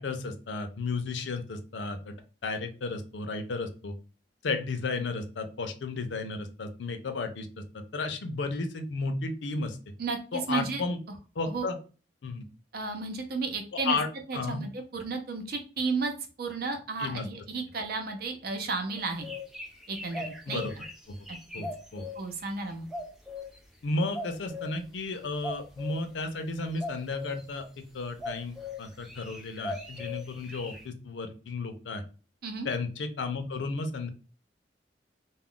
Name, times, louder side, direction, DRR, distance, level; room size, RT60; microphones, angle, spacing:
voice 1, 0.0-2.2 2.4-3.9 4.4-7.5 7.9-9.8 10.3-11.0 11.4-11.8 12.2-12.4 13.8-14.1 14.3-14.6 17.0-17.3 20.5-20.7 21.1-21.2 21.5-22.1 23.8-32.0 32.6-34.1, left 3 dB, 80° left, 8 dB, 0.5 m, -33 dB
voice 2, 10.5-10.8 11.5-11.6 12.7-14.0 14.3-16.1 16.4-19.3 19.9-20.8 21.3-21.7 22.2-22.9 32.4-32.7, right 4 dB, 55° right, 5 dB, 0.6 m, -33 dB
sound 1, 19.0-22.2 22.9-23.6 24.1-24.7 25.4-26.0 26.8-27.4 28.2-28.8 29.0-30.8, left 2 dB, ahead, 0.4 m, -39 dB
2.3 x 2.1 x 3.6 m, 0.36 s
head